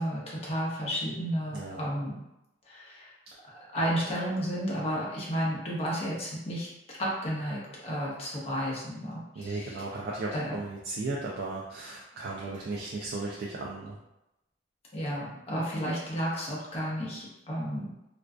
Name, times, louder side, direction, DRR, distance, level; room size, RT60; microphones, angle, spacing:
voice 1, 0.0-2.1 2.7-3.1 3.7-6.7 7.0-9.8 10.3-10.6 14.9-18.1, equal, 35° left, -5 dB, 0.7 m, -32 dB
voice 2, 9.4-14.0, right 3 dB, 55° right, -3 dB, 0.3 m, -35 dB
2.5 x 2.3 x 2.2 m, 0.90 s
head